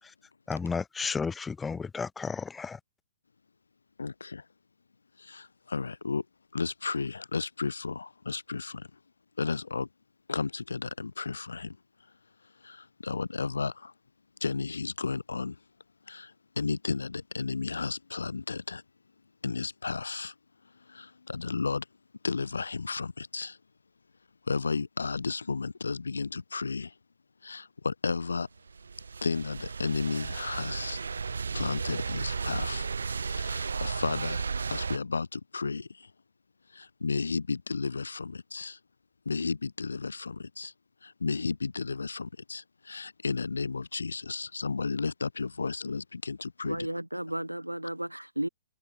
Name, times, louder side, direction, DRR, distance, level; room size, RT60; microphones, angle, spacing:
voice 1, 0.5-2.8, left 5 dB, 10° left, 3.1 m, -33 dB
voice 2, 4.0-4.4 5.2-6.2 6.5-8.9 9.4-9.9 10.3-11.8 12.6-13.9 14.4-15.6 16.1-18.8 19.4-20.3 20.9-21.9 22.2-23.6 24.5-26.9 27.4-28.5 29.2-31.0 31.5-32.9 33.2-34.4 34.7-36.1 36.7-38.8 39.2-40.7 41.0-46.9, left 4 dB, 70° left, 4.6 m, -33 dB
sound 1, 28.6-35.0, right 5 dB, 70° right, 7.3 m, -34 dB
voice 3, 46.6-48.5, right 1 dB, 90° right, 4.8 m, -33 dB
figure-of-eight pair, 115°, 0 cm